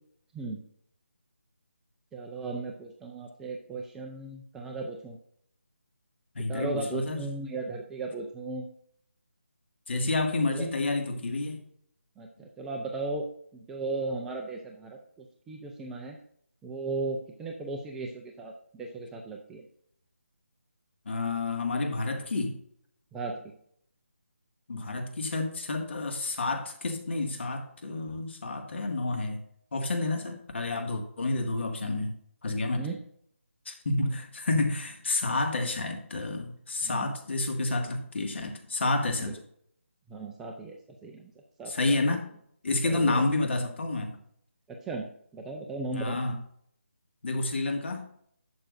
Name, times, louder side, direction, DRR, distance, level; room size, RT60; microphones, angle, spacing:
voice 1, 2.1-5.2 6.5-8.7 10.5-10.7 12.2-13.3 13.7-16.2 16.6-19.6 23.1-23.6 32.7-33.0 36.8-37.1 39.2-39.3 40.1-41.3 41.6-42.0 42.8-43.2 44.7-46.2, right 3 dB, 5° right, 1 dB, 0.4 m, -36 dB
voice 2, 6.4-7.2 9.9-11.6 21.1-22.6 24.7-29.4 29.7-32.2 32.4-32.9 33.7-39.3 41.7-42.3 42.6-44.2 45.9-46.4 47.2-48.1, left 2 dB, 55° left, 4 dB, 1.9 m, -29 dB
11.5 x 7.4 x 2.6 m, 0.65 s
figure-of-eight pair, 165°, 7 cm